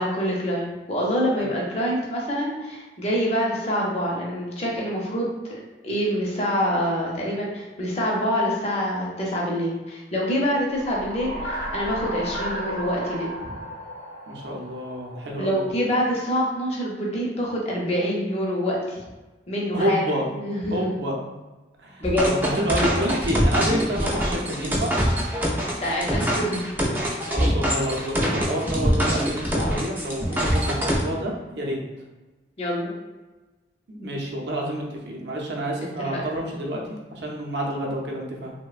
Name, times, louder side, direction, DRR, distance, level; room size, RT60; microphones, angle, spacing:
voice 1, 0.0-5.3 5.8-13.4 15.4-19.0 19.5-20.9 22.0-22.4 25.8-27.0 30.3-30.5 32.6-32.9 34.0-34.2 36.0-36.2, equal, 35° left, -3 dB, 0.6 m, -26 dB
sound 1, 10.7-15.3, right 1 dB, 70° left, 0.7 m, -33 dB
voice 2, 14.3-15.6 19.7-20.3 20.7-21.2 21.8-24.9 27.3-31.8 33.9-36.8 37.1-38.5, equal, 75° right, -1 dB, 0.5 m, -28 dB
sound 2, 22.0-31.0, equal, 10° right, 0.3 m, -24 dB
3.1 x 2.1 x 2.3 m, 1.2 s
head